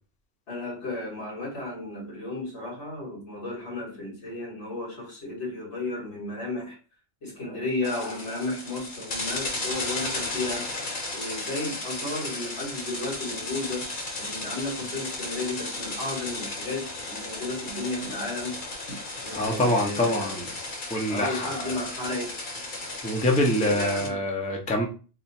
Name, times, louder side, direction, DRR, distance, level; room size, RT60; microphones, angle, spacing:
voice 1, 0.5-6.8 7.2-10.7 11.1-13.9 14.2-18.6 19.2-20.3 21.1-22.3 23.4-24.2, left 2 dB, 90° left, -3 dB, 2.0 m, -33 dB
sound 1, 7.8-24.1, left 2 dB, 50° left, 1.0 m, -35 dB
voice 2, 19.3-20.5 20.9-21.9 23.0-24.9, left 1 dB, 10° left, 1 dB, 0.4 m, -25 dB
3.5 x 2.1 x 4.2 m, 0.37 s
omnidirectional pair, 1.1 m